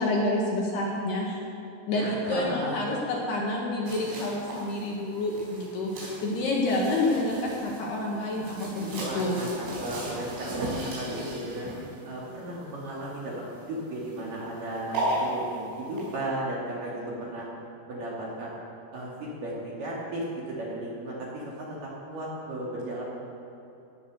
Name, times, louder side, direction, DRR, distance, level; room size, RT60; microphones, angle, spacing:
voice 1, 0.0-1.4 1.9-9.4, left 2 dB, 60° left, -2 dB, 3.2 m, -28 dB
voice 2, 2.0-2.8 9.0-11.7 12.0-17.5 17.9-18.6 18.9-23.0, right 1 dB, 50° right, -5 dB, 3.2 m, -35 dB
sound 1, 3.9-16.2, right 1 dB, 75° right, 7.1 m, -37 dB
17.5 x 9.9 x 6.5 m, 3.0 s
omnidirectional pair, 5.9 m